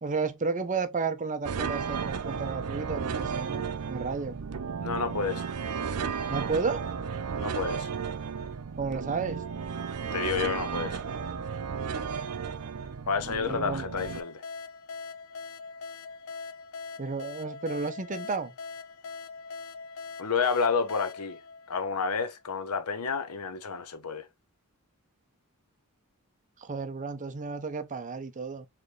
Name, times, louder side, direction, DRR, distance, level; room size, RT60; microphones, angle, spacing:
voice 1, 0.0-4.4 6.3-6.8 8.8-9.4 13.4-13.9 17.0-18.5 26.6-28.7, right 4 dB, 35° right, 0.7 m, -32 dB
Sad Parade, 1.4-14.2, right 6 dB, 85° right, 0.6 m, -34 dB
voice 2, 4.8-5.4 7.4-7.9 10.1-11.0 13.1-14.4 20.2-21.4 21.7-24.3, left 5 dB, 85° left, 0.9 m, -30 dB
sound 1, 14.0-22.4, left 4 dB, 65° left, 0.6 m, -42 dB
4.5 x 3.3 x 3.2 m
head